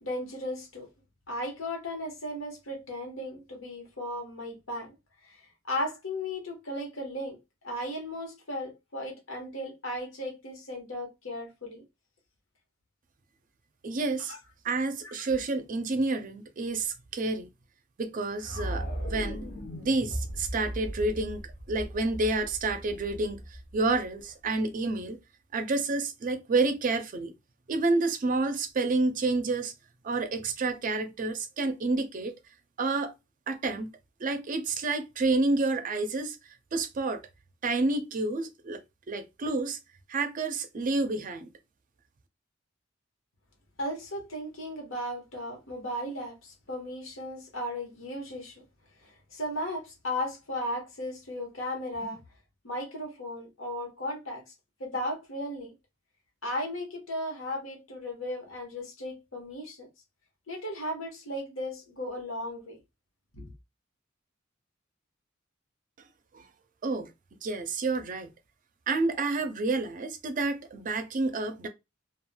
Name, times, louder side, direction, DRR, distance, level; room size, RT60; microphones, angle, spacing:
voice 1, 0.0-0.9 1.3-4.9 5.3-5.4 5.7-7.4 7.6-11.8 14.2-14.4 15.0-15.2 43.8-48.6 49.0-52.2 52.6-54.4 54.8-55.7 56.4-59.9 60.5-62.8 63.3-63.5, left 1 dB, 90° left, 1.1 m, -36 dB
voice 2, 13.8-14.3 14.6-17.5 18.0-19.5 19.7-23.4 23.7-25.2 25.5-27.3 27.7-29.7 30.0-32.4 32.8-33.1 33.5-33.9 34.2-36.4 36.7-37.2 37.6-38.8 39.1-39.8 40.1-41.5 66.3-66.4 66.8-67.1 67.4-68.3 68.9-71.7, right 3 dB, 45° right, 0.4 m, -29 dB
sound 1, 18.4-24.5, equal, 50° left, 0.8 m, -37 dB
3.1 x 2.3 x 2.2 m
head